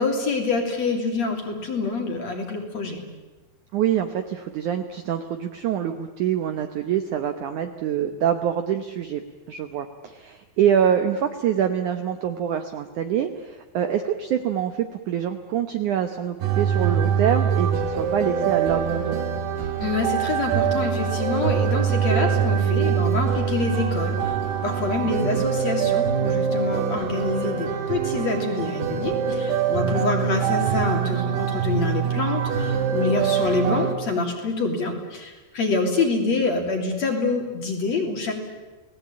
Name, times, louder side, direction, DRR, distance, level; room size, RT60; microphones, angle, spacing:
voice 1, 0.0-3.0 19.8-38.3, left 3 dB, 40° left, 3 dB, 3.9 m, -26 dB
voice 2, 3.7-9.2 9.5-19.2 25.2-25.4 29.8-30.0, right 9 dB, 85° right, 7 dB, 1.7 m, -25 dB
sound 1, 16.4-34.0, right 7 dB, 65° right, 3.5 m, -24 dB
30.0 x 19.0 x 8.7 m, 1.2 s
omnidirectional pair, 5.2 m